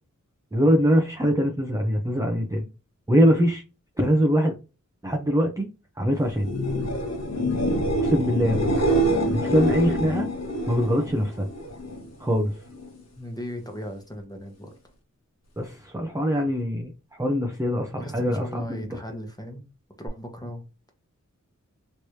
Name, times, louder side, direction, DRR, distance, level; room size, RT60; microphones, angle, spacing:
voice 1, 0.5-2.7 3.1-3.6 4.0-4.6 5.0-5.7 6.0-6.5 7.9-8.7 9.3-10.3 10.7-11.5 12.2-12.5 15.6-18.8, equal, 10° right, 0.6 m, -23 dB
sound 1, 6.3-12.1 12.4-13.0 20.1-20.2, right 1 dB, 55° left, 1.3 m, -26 dB
voice 2, 13.2-14.7 18.0-19.6 20.0-20.6, equal, 10° left, 1.1 m, -37 dB
3.2 x 3.1 x 2.7 m
wide cardioid pair, 70°, 31 cm